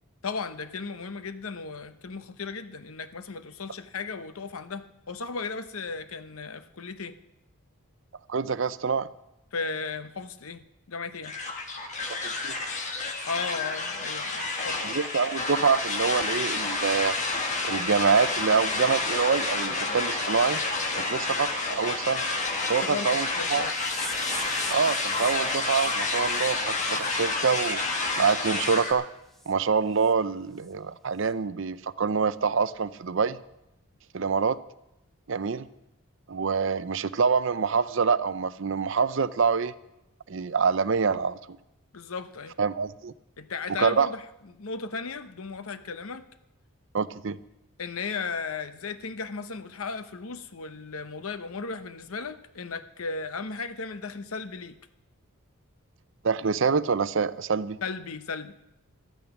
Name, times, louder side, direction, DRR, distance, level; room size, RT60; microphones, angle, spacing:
voice 1, 0.2-7.2 9.5-11.4 13.2-14.8 22.8-23.7 41.9-42.5 43.4-44.2 44.5-46.2 47.8-54.8 57.8-58.6, left 4 dB, 75° left, 11 dB, 0.8 m, -35 dB
voice 2, 8.3-9.1 12.2-12.6 14.8-17.1 17.6-20.6 20.9-22.2 22.7-23.6 24.7-27.8 28.2-29.1 29.5-33.4 34.1-34.6 35.3-35.7 36.3-39.7 40.3-41.6 42.6-43.1 43.8-44.1 46.9-47.4 56.2-57.8, right 5 dB, 55° right, 15 dB, 0.5 m, -26 dB
sound 1, 11.2-28.9, left 3 dB, 35° left, 1.5 m, -29 dB
sound 2, 23.6-28.3 28.7-28.9 29.4-29.5 30.0-30.1 30.6-30.7, right 1 dB, ahead, 0.8 m, -43 dB
13.5 x 12.5 x 5.9 m, 0.89 s
head